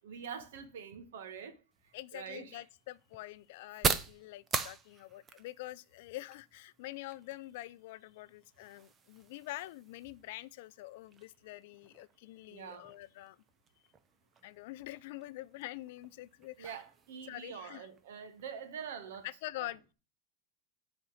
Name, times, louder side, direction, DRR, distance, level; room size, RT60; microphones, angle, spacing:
voice 1, 0.0-1.5 2.1-2.6 12.5-12.8 16.6-19.3 19.6-19.7, right 7 dB, 85° right, 1.5 m, -45 dB
sound 1, 1.7-19.3, right 6 dB, 15° right, 0.5 m, -43 dB
voice 2, 1.9-13.4 14.4-16.8 17.3-17.9 19.2-19.9, left 17 dB, 55° left, 0.4 m, -46 dB
8.5 x 4.3 x 6.3 m
supercardioid pair, 175°, 0 cm